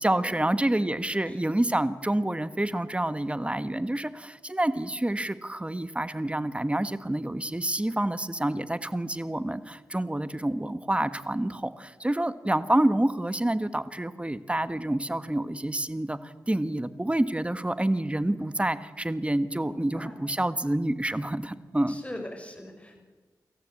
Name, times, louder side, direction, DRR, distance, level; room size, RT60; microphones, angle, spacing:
voice 1, 0.0-22.0, right 1 dB, 15° right, 13 dB, 1.4 m, -28 dB
voice 2, 19.6-20.2 21.9-23.0, left 1 dB, 15° left, 3 dB, 6.1 m, -41 dB
27.5 x 14.0 x 8.6 m, 1.4 s
cardioid pair, 60°, 8 cm